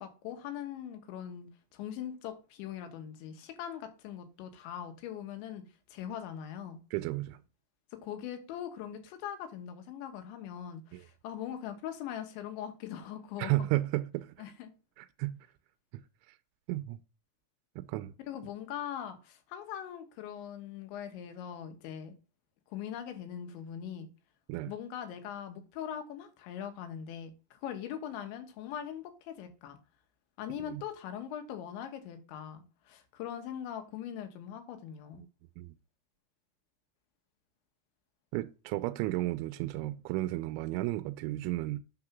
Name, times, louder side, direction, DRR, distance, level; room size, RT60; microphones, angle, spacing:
voice 1, 0.0-5.6 5.9-6.8 8.0-13.7 14.4-14.7 18.2-22.2 22.7-24.1 24.7-29.8 30.4-35.2, left 9 dB, 75° left, 3.5 m, -41 dB
voice 2, 6.9-7.4 10.9-11.0 13.4-14.3 15.0-15.4 16.7-17.0 17.8-18.1 24.5-24.7 30.7-30.8 35.6-35.7 38.3-41.8, right 17 dB, 85° right, 3.0 m, -33 dB
8.8 x 4.8 x 5.9 m
omnidirectional pair, 5.4 m